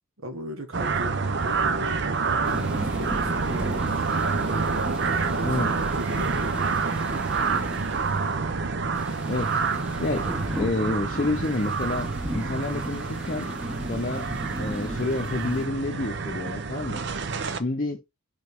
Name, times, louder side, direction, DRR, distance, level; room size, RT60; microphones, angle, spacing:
voice 1, 0.2-1.2 1.4-4.1 4.4-7.6, equal, 70° right, 1.4 m, -38 dB
sound 1, 0.7-17.6, right 4 dB, 55° right, 0.7 m, -28 dB
sound 2, 2.4-8.4 8.9-15.7, equal, 5° right, 1.0 m, -37 dB
voice 2, 9.3-9.6 10.0-10.3 10.5-13.5 13.9-14.3 14.6-17.0 17.5-18.0, left 2 dB, 40° left, 0.7 m, -29 dB
5.1 x 3.8 x 4.8 m
head